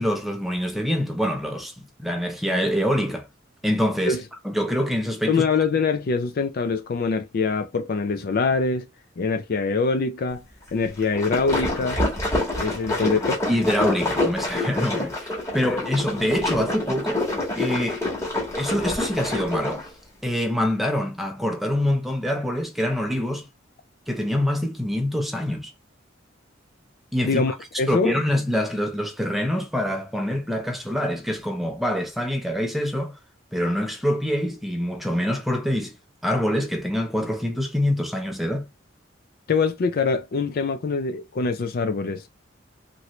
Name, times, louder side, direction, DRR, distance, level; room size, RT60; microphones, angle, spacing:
voice 1, 0.0-3.3 3.6-5.4 13.5-17.3 17.6-18.1 18.6-19.9 20.2-23.5 24.1-25.7 27.1-27.4 27.9-33.2 33.5-35.9 36.2-38.7, equal, ahead, 0.6 m, -25 dB
voice 2, 5.3-8.9 9.2-10.4 10.7-12.0 12.5-13.4 27.2-28.1 39.5-42.2, left 4 dB, 50° left, 0.4 m, -24 dB
sound 1, 11.0-19.9, left 2 dB, 15° left, 1.3 m, -27 dB
3.0 x 2.6 x 3.1 m
head